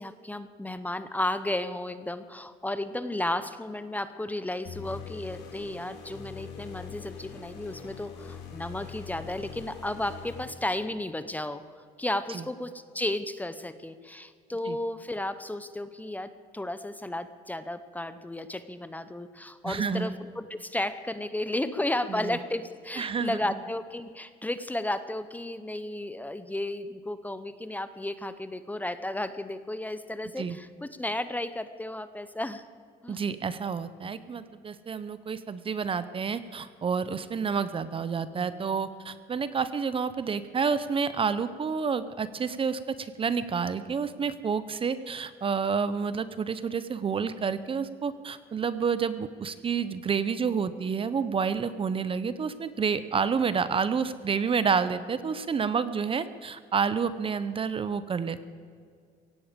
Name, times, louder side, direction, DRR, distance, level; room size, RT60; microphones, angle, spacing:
voice 1, 0.0-11.6 12.0-32.6 33.0-33.2, left 1 dB, 10° left, 12 dB, 0.8 m, -33 dB
sound 1, 4.7-11.1, left 7 dB, 85° left, 3.0 m, -43 dB
voice 2, 19.6-20.1 22.1-22.4 23.0-23.4 30.4-30.6 33.1-58.5, right 6 dB, 30° right, 14 dB, 0.8 m, -29 dB
17.0 x 16.0 x 5.2 m, 2.1 s
cardioid pair, 110°, 17 cm